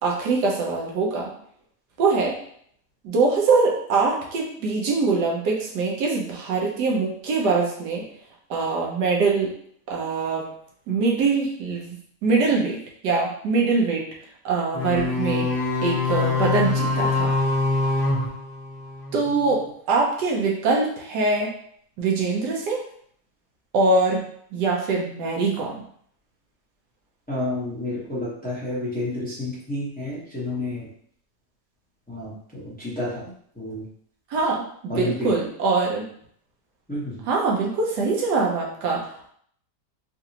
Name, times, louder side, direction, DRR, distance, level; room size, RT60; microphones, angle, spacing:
voice 1, 0.0-1.3 2.0-2.4 3.0-8.0 8.5-9.5 9.9-10.4 10.9-12.0 12.2-12.8 13.0-14.0 14.4-15.5 15.8-17.3 19.1-21.5 22.0-22.8 23.7-24.2 24.5-25.8 34.3-36.1 37.2-39.3, right 4 dB, 85° right, -1 dB, 1.4 m, -23 dB
sound 1, 14.7-19.2, left 3 dB, 75° left, 1.4 m, -24 dB
voice 2, 27.3-30.9 32.1-33.3 33.6-33.8 34.9-35.3 36.9-37.2, left 1 dB, 5° left, -8 dB, 0.8 m, -30 dB
3.8 x 2.5 x 2.8 m, 0.63 s
omnidirectional pair, 1.8 m